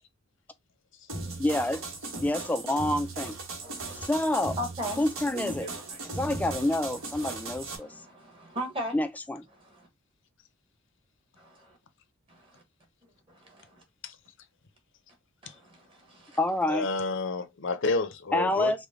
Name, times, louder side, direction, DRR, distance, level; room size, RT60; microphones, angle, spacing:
sound 1, 1.1-7.8, right 3 dB, 75° right, 1.3 m, -38 dB
voice 1, 1.4-1.8 2.2-3.3 3.9-4.6 5.0-5.7 6.2-7.9 8.9-9.4 16.4-16.9 18.3-18.8, left 1 dB, 10° left, 0.4 m, -27 dB
voice 2, 3.6-4.1 4.6-6.3 7.2-9.0 9.5-9.9 11.4-11.8 12.3-12.6 13.3-13.8 15.4-16.4, equal, 25° right, 1.3 m, -40 dB
voice 3, 16.7-18.9, left 3 dB, 60° left, 0.6 m, -30 dB
5.0 x 2.2 x 3.6 m
head